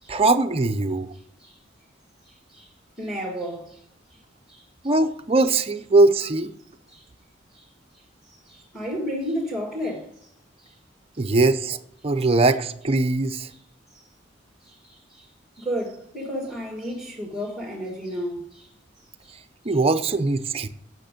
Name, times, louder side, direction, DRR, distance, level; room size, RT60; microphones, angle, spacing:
voice 1, 0.1-1.1 4.8-6.5 11.2-11.8 12.0-13.5 19.6-20.7, right 2 dB, 30° right, 0.6 m, -21 dB
voice 2, 2.2-2.7 3.0-3.8 4.5-4.9 6.9-7.1 7.5-7.7 8.3-10.3 10.6-10.8 11.2-11.3 13.5-13.6 13.9-14.0 14.6-15.3 15.6-18.7 19.2-19.3 19.6-19.8, equal, ahead, 1.9 m, -33 dB
9.1 x 6.5 x 5.2 m
head